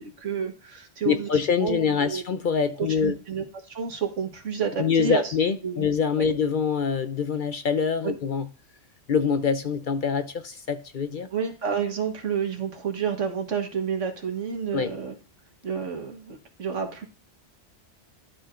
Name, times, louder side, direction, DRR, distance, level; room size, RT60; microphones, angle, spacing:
voice 1, 0.0-1.3 1.6-2.2 2.8-5.3 5.6-5.9 6.2-6.3 8.0-8.2 11.2-15.2 15.6-17.1, right 6 dB, 90° right, 1.7 m, -30 dB
voice 2, 1.1-3.1 4.8-8.5 9.1-11.3 14.7-14.9, left 6 dB, 55° left, 0.6 m, -25 dB
12.0 x 4.7 x 2.5 m
omnidirectional pair, 1.2 m